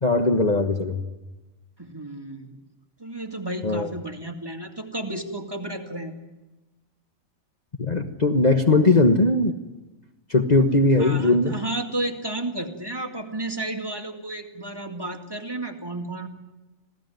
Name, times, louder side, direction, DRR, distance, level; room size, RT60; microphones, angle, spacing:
voice 1, 0.0-1.0 3.6-3.9 7.8-9.6 10.3-11.6, left 2 dB, 30° left, 4 dB, 1.4 m, -19 dB
voice 2, 1.8-2.6 3.0-6.1 11.0-16.3, right 2 dB, 15° right, 3 dB, 2.2 m, -32 dB
27.0 x 17.5 x 9.3 m, 1.1 s
omnidirectional pair, 1.4 m